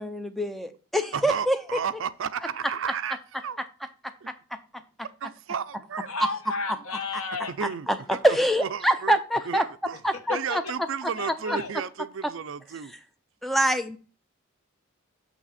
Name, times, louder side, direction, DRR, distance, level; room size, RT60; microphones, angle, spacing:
voice 1, 0.0-1.6 7.6-9.7 10.0-10.6 13.4-14.0, right 1 dB, ahead, 0.5 m, -25 dB
voice 2, 1.1-3.2 3.4-3.6 4.2-4.3 5.2-6.1 7.6-8.2 8.6-9.2 9.5-10.0 10.3-12.9, right 7 dB, 60° right, 0.4 m, -33 dB
voice 3, 6.1-7.5 10.3-10.7 11.2-11.7, left 4 dB, 80° left, 1.2 m, -33 dB
6.7 x 6.0 x 4.0 m
head